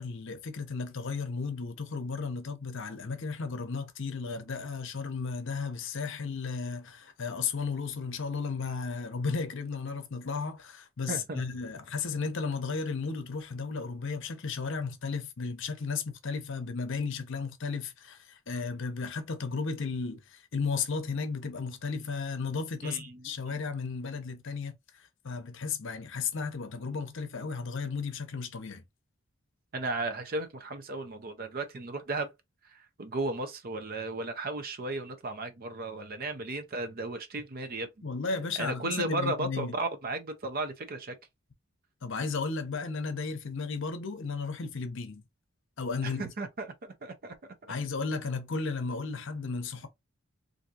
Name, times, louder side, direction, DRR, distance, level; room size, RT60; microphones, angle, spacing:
voice 1, 0.0-28.8 38.0-39.8 42.0-45.2 45.8-46.3 47.7-49.9, left 4 dB, 60° left, 0.7 m, -34 dB
voice 2, 11.1-11.4 22.8-23.6 29.7-32.3 32.7-38.0 38.6-41.2 46.0-47.4, right 2 dB, 45° right, 0.6 m, -35 dB
3.5 x 2.6 x 2.7 m
head